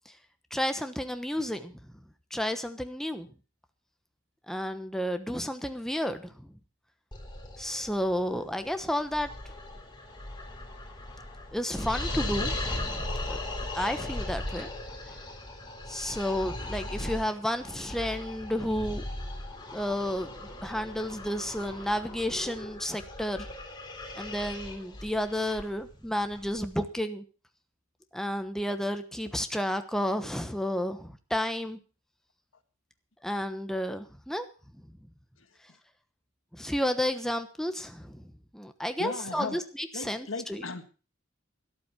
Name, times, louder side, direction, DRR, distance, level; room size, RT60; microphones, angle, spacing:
voice 1, 0.5-1.8 2.3-3.3 4.5-6.5 7.6-9.3 11.5-13.4 13.7-14.7 15.9-19.0 19.7-20.3 20.6-23.5 24.2-27.2 28.1-31.8 33.2-34.4 36.5-40.6, equal, ahead, 7 dB, 1.0 m, -31 dB
sound 1, 7.1-26.8, left 1 dB, 25° left, 3.6 m, -38 dB
voice 2, 39.0-39.6 39.9-40.9, left 3 dB, 80° left, 8 dB, 1.8 m, -36 dB
13.0 x 12.0 x 5.7 m, 0.36 s
head